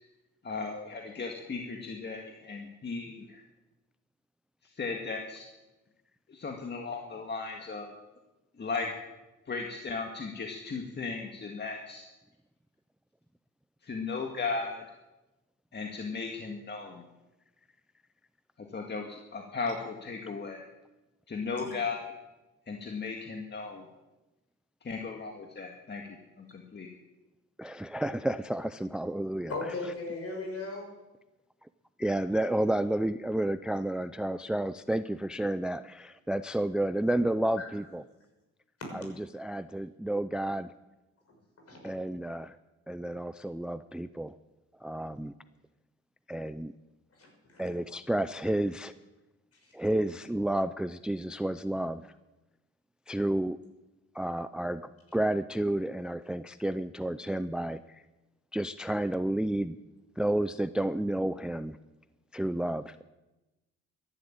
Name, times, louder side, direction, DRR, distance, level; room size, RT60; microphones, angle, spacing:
voice 1, 0.4-3.4 4.6-5.4 6.3-7.9 8.6-8.9 9.5-12.1 13.8-14.8 15.7-17.0 18.7-20.6 21.3-22.1 22.7-23.9 24.8-26.9, left 4 dB, 35° left, 2 dB, 1.9 m, -36 dB
voice 2, 27.6-29.5 32.0-38.0 38.9-40.7 41.8-42.6 42.9-44.3 44.8-45.3 46.3-46.7 47.6-48.9 49.7-52.1 53.1-53.6 54.1-54.8 55.1-58.0 58.5-59.8 60.2-61.8 62.3-63.0, right 1 dB, 5° right, 14 dB, 0.4 m, -31 dB
voice 3, 29.5-30.9 37.6-37.7 38.8-38.9 41.7-41.8 47.2-47.6 49.6-49.7, left 3 dB, 50° left, 2 dB, 6.3 m, -37 dB
13.5 x 11.5 x 8.8 m, 1.1 s
cardioid pair, 90°, 30 cm